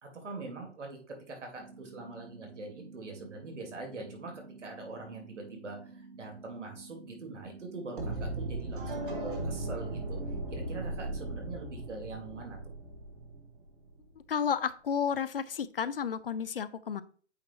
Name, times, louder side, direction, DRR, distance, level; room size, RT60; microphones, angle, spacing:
voice 1, 0.0-10.2 10.5-12.6, right 3 dB, 90° right, 2 dB, 2.7 m, -43 dB
sound 1, 1.6-11.6, right 4 dB, 70° right, 1.4 m, -51 dB
sound 2, 8.0-13.9, right 2 dB, 45° right, 1.2 m, -37 dB
voice 2, 14.2-17.0, left 7 dB, 55° left, 16 dB, 0.5 m, -32 dB
8.3 x 2.9 x 4.4 m, 0.43 s
hypercardioid pair, 175°, 35 cm